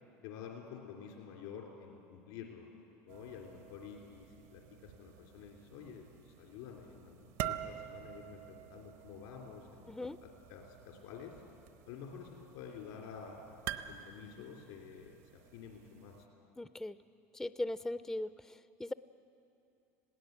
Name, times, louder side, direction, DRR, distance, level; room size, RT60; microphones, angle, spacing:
voice 1, 0.2-2.7 3.0-9.9 10.2-11.3 11.9-13.5 13.9-16.1, left 7 dB, 80° left, 0 dB, 3.0 m, -49 dB
sound 1, 3.1-16.3, right 11 dB, 70° right, 0.9 m, -48 dB
voice 2, 16.6-17.0 17.3-18.9, left 1 dB, 5° left, 14 dB, 0.4 m, -39 dB
21.0 x 17.0 x 8.0 m, 2.7 s
supercardioid pair, 95°, 8 cm